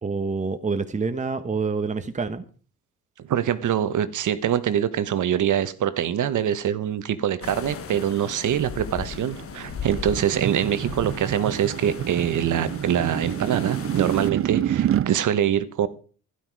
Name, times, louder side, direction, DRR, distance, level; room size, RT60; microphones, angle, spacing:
voice 1, 0.0-2.4, right 4 dB, 20° right, 1.1 m, -27 dB
voice 2, 3.3-15.9, right 9 dB, 65° right, 1.3 m, -24 dB
sound 1, 7.4-14.3, left 7 dB, 45° left, 1.4 m, -37 dB
sound 2, 9.1-15.1, right 10 dB, 40° right, 0.5 m, -28 dB
12.5 x 11.5 x 4.8 m
cardioid pair, 95°, 33 cm